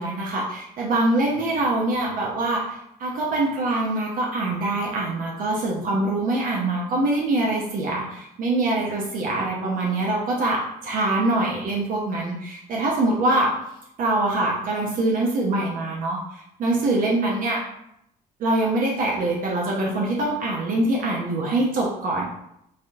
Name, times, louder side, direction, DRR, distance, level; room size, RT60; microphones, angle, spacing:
voice 1, 0.0-13.5 14.0-17.6 18.4-22.2, right 2 dB, 55° right, -3 dB, 0.6 m, -24 dB
3.4 x 2.2 x 2.6 m, 0.78 s
cardioid pair, 110°, 17 cm